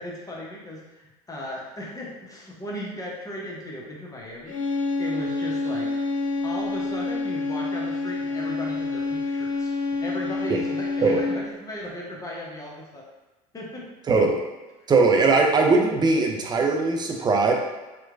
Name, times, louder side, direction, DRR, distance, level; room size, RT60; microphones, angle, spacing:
voice 1, 0.0-6.0 6.4-9.7 10.0-13.1 13.5-13.9, left 1 dB, 20° left, -3 dB, 0.8 m, -37 dB
sound 1, 4.5-11.6, left 3 dB, 85° left, 0.4 m, -28 dB
voice 2, 14.9-17.5, right 3 dB, 25° right, 1 dB, 0.5 m, -20 dB
2.9 x 2.2 x 2.5 m, 1.1 s
hypercardioid pair, 70°, 17 cm